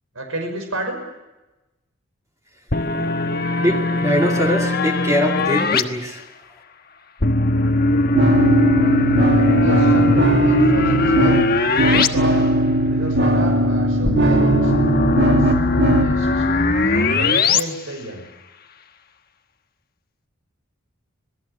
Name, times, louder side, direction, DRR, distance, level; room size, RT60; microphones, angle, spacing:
voice 1, 0.1-1.0 9.6-11.4 11.8-12.5 12.9-14.7 15.0-16.5 16.8-18.3, right 1 dB, 80° right, 4 dB, 5.7 m, -31 dB
sound 1, 2.7-5.8 7.2-12.1 12.4-12.5 14.1-17.6, left 2 dB, 45° left, 1.3 m, -19 dB
voice 2, 3.6-6.2, equal, 15° right, 1 dB, 2.3 m, -22 dB
sound 2, 8.1-16.1, right 1 dB, 50° right, 2.1 m, -19 dB
26.5 x 18.5 x 8.3 m, 1.0 s
head